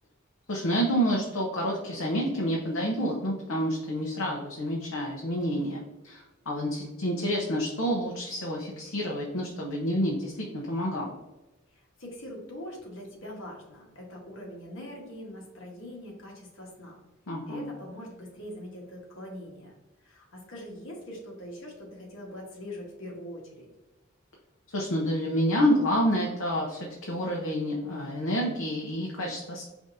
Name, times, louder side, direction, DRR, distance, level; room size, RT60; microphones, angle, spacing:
voice 1, 0.5-11.1 17.3-17.7 24.7-29.6, equal, 85° left, -2 dB, 0.8 m, -28 dB
voice 2, 11.7-17.0 17.5-19.7 20.0-23.7, left 1 dB, 65° left, -2 dB, 1.4 m, -42 dB
5.0 x 3.5 x 2.7 m, 1.1 s
head